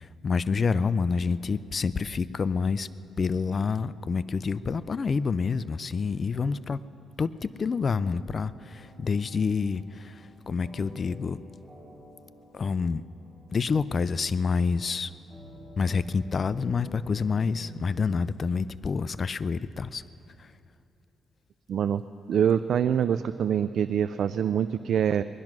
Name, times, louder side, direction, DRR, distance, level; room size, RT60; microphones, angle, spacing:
voice 1, 0.0-2.9 3.2-6.8 7.2-11.4 12.5-13.0 13.5-15.1 15.8-20.0 20.4-20.5, left 5 dB, 40° left, 16 dB, 0.4 m, -28 dB
sound 1, 7.8-17.8, equal, 10° right, 4.5 m, -51 dB
voice 2, 21.7-22.0 22.3-25.2, right 8 dB, 65° right, 12 dB, 0.3 m, -25 dB
20.0 x 12.0 x 6.1 m, 2.8 s
cardioid pair, 100°, 0 cm